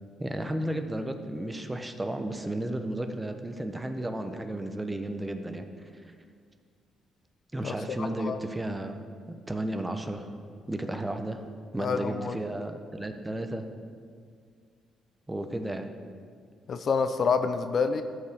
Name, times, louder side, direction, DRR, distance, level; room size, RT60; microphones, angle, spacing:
voice 1, 0.2-5.6 7.5-9.0 9.5-10.3 10.7-11.4 11.7-13.6 15.3-15.9, right 1 dB, 15° right, 6 dB, 0.8 m, -33 dB
voice 2, 7.6-8.4 11.8-12.4 16.7-18.0, left 5 dB, 50° left, 9 dB, 0.5 m, -28 dB
14.5 x 5.5 x 3.6 m, 2.1 s
cardioid pair, 90°, 0 cm